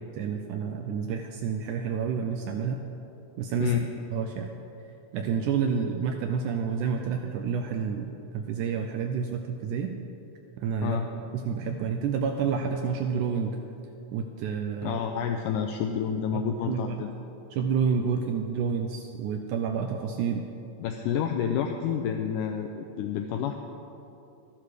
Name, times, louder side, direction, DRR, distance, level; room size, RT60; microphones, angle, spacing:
voice 1, 0.2-2.8 3.4-3.8 4.1-4.5 5.1-9.9 10.6-11.0 11.4-13.6 14.1-15.0 16.3-17.0 17.5-20.4, right 6 dB, 85° right, 4 dB, 1.8 m, -29 dB
voice 2, 3.6-3.9 10.8-11.1 14.8-17.1 20.8-23.6, left 8 dB, 85° left, 4 dB, 1.8 m, -29 dB
12.5 x 11.5 x 4.9 m, 2.9 s
omnidirectional pair, 4.2 m